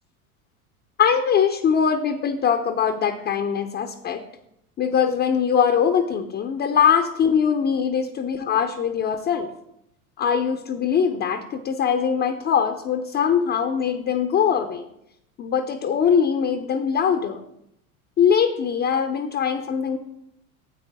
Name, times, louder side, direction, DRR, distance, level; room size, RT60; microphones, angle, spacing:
voice 1, 1.0-4.2 4.8-9.5 10.2-14.8 15.4-17.4 18.2-20.0, left 7 dB, 25° left, 6 dB, 0.6 m, -22 dB
10.0 x 7.9 x 3.6 m, 0.79 s
figure-of-eight pair, 75°, 44 cm